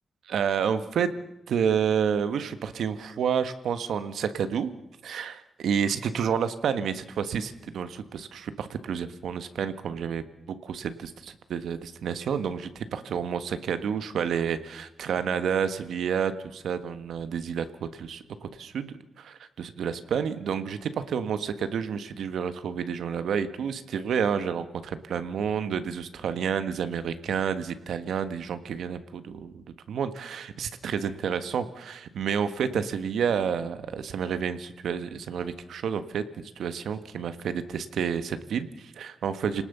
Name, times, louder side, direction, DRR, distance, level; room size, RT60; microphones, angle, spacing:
voice 1, 0.3-1.1 1.5-4.7 5.0-10.2 10.6-36.2 36.6-39.6, right 7 dB, 85° right, 11 dB, 1.5 m, -30 dB
29.0 x 19.0 x 6.9 m, 0.81 s
wide cardioid pair, 155°, 0 cm